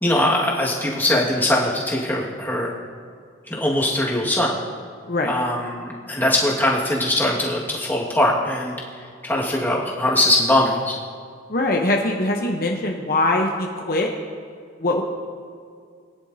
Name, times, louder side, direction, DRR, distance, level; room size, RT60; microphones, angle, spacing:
voice 1, 0.0-2.7 3.5-4.5 5.3-8.7 9.2-11.0, left 1 dB, 10° left, -4 dB, 1.8 m, -21 dB
voice 2, 11.5-14.1 14.8-15.0, left 2 dB, 50° left, 1 dB, 0.8 m, -22 dB
21.0 x 10.5 x 2.8 m, 2.1 s
head